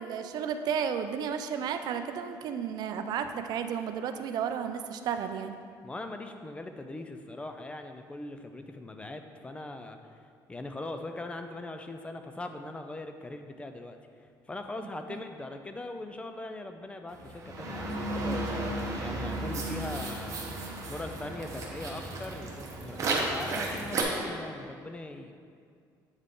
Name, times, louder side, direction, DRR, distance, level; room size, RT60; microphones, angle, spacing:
voice 1, 0.0-5.5 15.1-15.2, right 7 dB, 60° right, 8 dB, 0.4 m, -33 dB
voice 2, 5.8-10.2 10.5-20.4 20.9-25.3, left 2 dB, 15° left, 6 dB, 0.3 m, -41 dB
sound 1, 17.1-24.0, right 2 dB, 40° right, 0.9 m, -34 dB
7.9 x 3.7 x 3.7 m, 2.2 s
cardioid pair, 135°, 8 cm